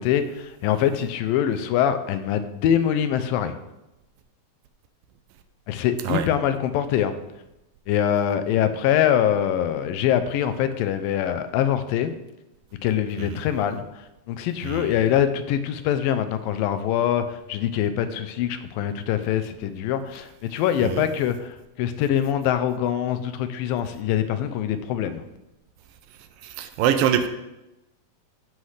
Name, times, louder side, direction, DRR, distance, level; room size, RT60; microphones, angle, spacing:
voice 1, 0.0-3.6 5.7-7.1 7.9-12.1 12.8-25.2, left 10 dB, 85° left, 10 dB, 2.4 m, -24 dB
voice 2, 14.6-14.9 20.8-21.1 26.4-27.3, right 9 dB, 85° right, 9 dB, 2.3 m, -24 dB
14.0 x 5.6 x 3.3 m, 0.93 s
omnidirectional pair, 4.0 m